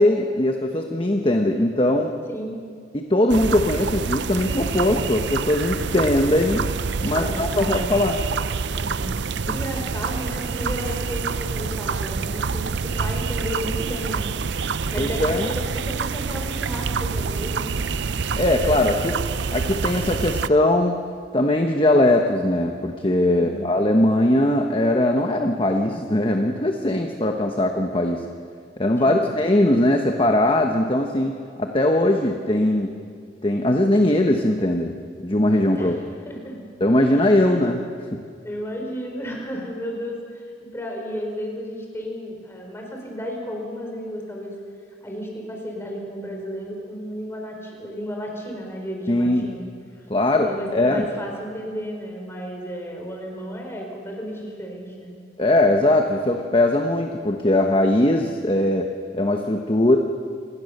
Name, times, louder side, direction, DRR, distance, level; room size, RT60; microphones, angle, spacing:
voice 1, 0.0-2.1 2.9-6.7 7.0-8.2 9.5-9.6 15.0-15.5 18.4-19.2 19.5-21.0 21.3-28.2 28.8-32.9 33.4-34.9 35.2-36.0 36.8-37.8 38.1-38.2 49.1-49.5 50.1-51.1 55.4-58.9 59.1-60.0, left 1 dB, 30° left, 3 dB, 1.2 m, -20 dB
sound 1, 3.3-20.5, right 5 dB, 85° right, 0.6 m, -27 dB
voice 2, 7.1-7.9 8.7-9.2 9.5-14.3 14.7-17.7 23.3-23.7 29.0-29.2 35.8-36.0 36.2-36.5 37.1-37.6 38.4-44.5 45.0-49.7 50.4-55.2, equal, 15° left, 1 dB, 4.6 m, -33 dB
27.5 x 19.5 x 6.7 m, 2.2 s
head